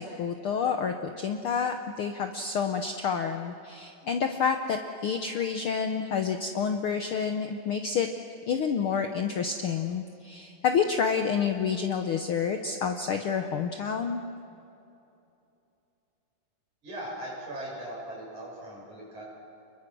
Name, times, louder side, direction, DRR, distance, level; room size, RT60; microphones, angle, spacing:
voice 1, 0.0-8.1 8.5-14.2, left 6 dB, 85° left, 6 dB, 1.2 m, -29 dB
voice 2, 16.8-19.2, right 1 dB, 60° right, -3 dB, 8.5 m, -39 dB
30.0 x 22.0 x 6.2 m, 2.8 s
omnidirectional pair, 3.8 m